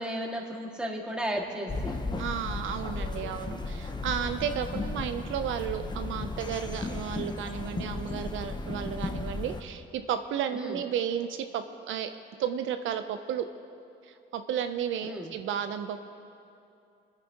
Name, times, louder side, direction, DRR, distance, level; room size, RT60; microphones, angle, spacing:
voice 1, 0.0-2.0 10.5-10.8 15.0-15.3, equal, 5° right, -1 dB, 2.0 m, -34 dB
sound 1, 1.7-9.6, left 3 dB, 20° left, 0.9 m, -35 dB
voice 2, 2.2-12.1 12.4-13.4 14.0-16.1, right 9 dB, 80° right, 8 dB, 0.6 m, -33 dB
28.0 x 9.7 x 2.9 m, 2.6 s
cardioid pair, 90°, 20 cm